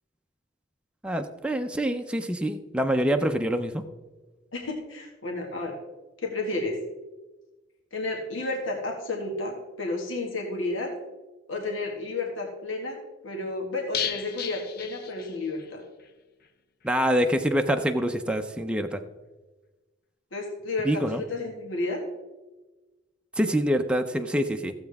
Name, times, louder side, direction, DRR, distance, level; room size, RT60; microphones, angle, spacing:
voice 1, 1.0-3.8 16.8-19.0 20.8-21.2 23.4-24.7, equal, 5° right, 5 dB, 0.5 m, -25 dB
voice 2, 4.5-5.7 6.2-6.8 7.9-10.9 11.5-15.8 20.3-22.0, left 2 dB, 80° left, 0 dB, 1.9 m, -31 dB
sound 1, 13.9-15.7 16.0-16.1 16.4-16.5, left 9 dB, 50° left, 0.7 m, -34 dB
15.0 x 7.9 x 3.5 m, 1.2 s
head